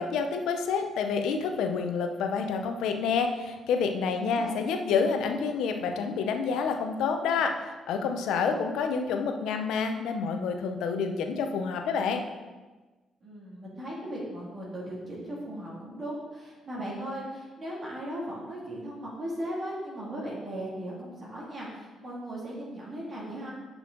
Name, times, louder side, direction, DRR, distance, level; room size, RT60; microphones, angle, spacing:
voice 1, 0.0-7.6 7.9-12.2, left 5 dB, 85° left, 6 dB, 0.7 m, -28 dB
voice 2, 4.2-4.6 8.3-8.7 13.2-23.5, right 1 dB, 40° right, -6 dB, 2.4 m, -37 dB
7.0 x 6.1 x 3.9 m, 1.3 s
cardioid pair, 90°, 0 cm